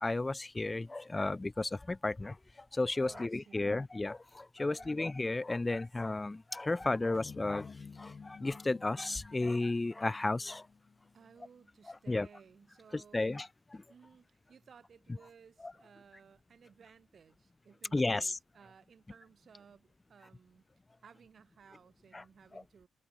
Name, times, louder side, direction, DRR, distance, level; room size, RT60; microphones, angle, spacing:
voice 1, 0.0-2.4 2.7-7.7 8.0-10.6 12.1-12.3 13.1-13.5 17.9-18.4 22.1-22.2, left 2 dB, 20° left, 0.3 m, -33 dB
voice 2, 3.0-3.9 4.6-5.1 11.1-13.5 13.9-20.6 21.0-22.9, right 6 dB, 45° right, 6.7 m, -59 dB
sound 1, 7.1-11.5, left 5 dB, 35° left, 5.2 m, -52 dB
cardioid pair, 90°, 0 cm